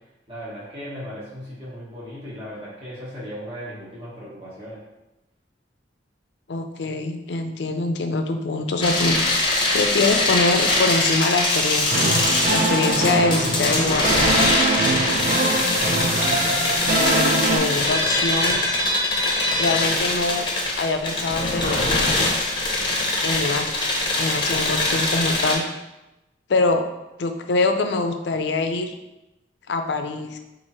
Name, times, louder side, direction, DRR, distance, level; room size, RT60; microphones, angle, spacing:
voice 1, 0.3-4.8, equal, 30° right, -9 dB, 1.2 m, -37 dB
voice 2, 6.5-12.2 12.5-14.6 16.8-18.6 19.6-20.4 20.8-22.3 23.2-23.7 24.2-25.6 26.5-26.8 27.2-29.0 29.7-30.4, left 3 dB, 70° left, 6 dB, 0.4 m, -24 dB
sound 1, 8.8-25.6, left 2 dB, 25° left, 0.8 m, -22 dB
sound 2, 11.9-17.6, right 2 dB, 50° right, 0.8 m, -23 dB
4.7 x 2.5 x 4.2 m, 0.97 s
head